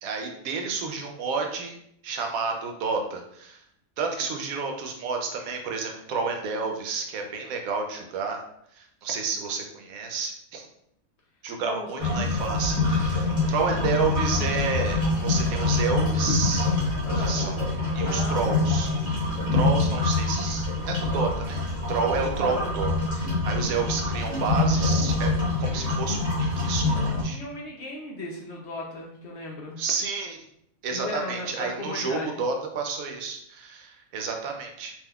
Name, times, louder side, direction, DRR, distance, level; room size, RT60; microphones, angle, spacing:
voice 1, 0.0-1.8 2.0-3.6 4.0-8.4 8.7-10.7 11.4-16.7 17.2-17.6 17.9-18.9 19.5-21.6 21.9-25.3 25.6-26.3 26.6-27.4 29.8-30.4 30.8-34.9, right 4 dB, 80° right, 3 dB, 1.0 m, -30 dB
voice 2, 11.6-12.4 13.7-14.1 17.0-17.3 18.0-18.8 22.3-22.7 27.2-29.8 30.9-32.4, left 2 dB, 65° left, -1 dB, 0.7 m, -37 dB
sound 1, 12.0-27.2, left 2 dB, 30° right, 1.0 m, -25 dB
3.5 x 2.7 x 2.2 m, 0.72 s
omnidirectional pair, 1.5 m